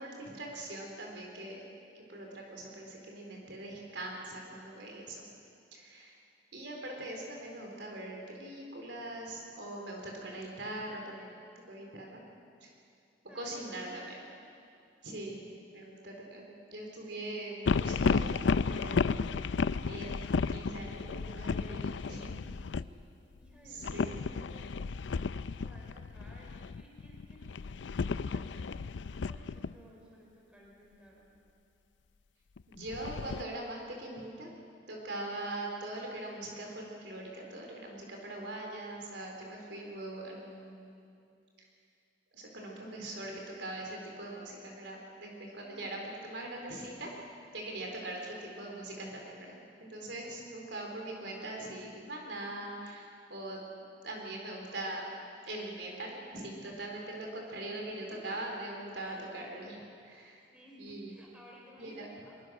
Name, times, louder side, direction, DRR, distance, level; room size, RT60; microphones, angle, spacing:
voice 1, 0.0-1.6 2.1-5.2 5.7-6.1 6.5-11.3 11.7-12.2 12.6-12.7 13.3-14.2 15.0-15.4 15.7-18.2 18.7-19.0 19.8-20.1 20.5-22.3 23.6-24.2 32.7-34.5 34.9-41.0 42.3-47.1 47.5-55.1 55.4-60.4 60.8-61.2 61.8-62.1, right 1 dB, 75° right, 0 dB, 4.0 m, -42 dB
voice 2, 13.3-14.3 21.7-22.4 22.7-23.1 23.4-24.7 25.6-27.4 28.0-28.8 29.3-31.3 45.6-46.1 57.8-58.5 59.0-59.3 60.5-62.4, equal, 5° right, -3 dB, 4.8 m, -55 dB
sound 1, 17.7-22.9 23.8-29.7 32.6-33.4, left 5 dB, 80° left, 0.5 m, -33 dB
23.0 x 22.5 x 6.5 m, 2.5 s
head